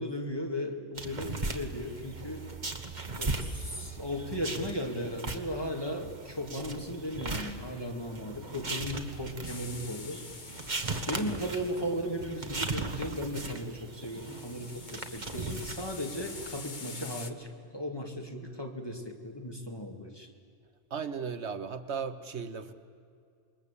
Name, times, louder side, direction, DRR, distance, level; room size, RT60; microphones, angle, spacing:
voice 1, 0.0-2.4 3.2-10.2 11.1-17.5 17.7-20.3, equal, 20° left, 2 dB, 2.7 m, -36 dB
sound 1, 1.0-16.6, right 3 dB, 40° right, 1.8 m, -38 dB
sound 2, 9.4-12.0 14.0-17.3, left 4 dB, 45° left, 1.5 m, -46 dB
voice 2, 20.9-22.7, right 6 dB, 70° right, 11 dB, 1.4 m, -36 dB
27.5 x 22.0 x 8.6 m, 2.4 s
omnidirectional pair, 1.2 m